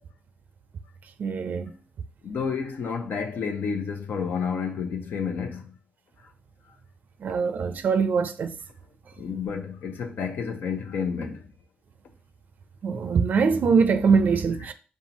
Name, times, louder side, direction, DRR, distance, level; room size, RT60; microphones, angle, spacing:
voice 1, 1.2-1.7 7.2-8.5 12.8-14.7, right 5 dB, 65° right, 0.4 m, -22 dB
voice 2, 2.2-5.7 6.7-6.8 9.2-11.5, left 6 dB, 75° left, 0.7 m, -30 dB
5.4 x 2.4 x 2.9 m
cardioid pair, 90°, 3 cm